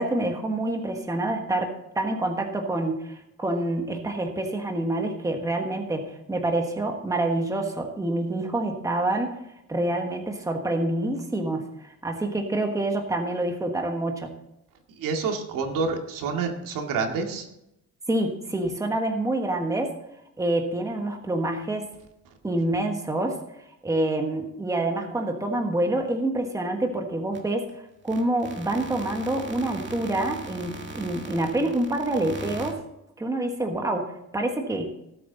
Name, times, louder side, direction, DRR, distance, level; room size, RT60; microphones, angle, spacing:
voice 1, 0.0-9.3 9.7-14.3 18.1-19.9 20.4-21.9 22.4-23.4 23.8-27.6 28.0-32.8 33.2-34.9, right 1 dB, 10° right, 3 dB, 1.4 m, -27 dB
voice 2, 15.0-17.5, right 4 dB, 85° right, 3 dB, 2.2 m, -28 dB
sound 1, 27.3-27.4 27.7-27.8 28.0-32.7, right 3 dB, 35° right, 1.9 m, -39 dB
18.0 x 7.8 x 4.0 m, 0.84 s
cardioid pair, 155°, 32 cm